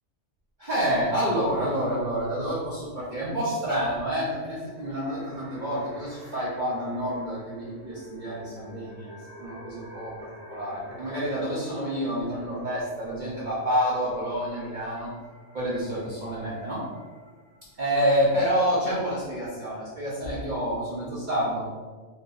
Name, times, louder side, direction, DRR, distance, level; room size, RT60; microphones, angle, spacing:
voice 1, 0.6-15.1 15.5-16.8 17.8-21.7, equal, 45° right, -9 dB, 0.9 m, -28 dB
sound 1, 4.4-17.8, left 1 dB, 30° right, 1.1 m, -50 dB
3.0 x 2.7 x 3.8 m, 1.4 s
omnidirectional pair, 1.2 m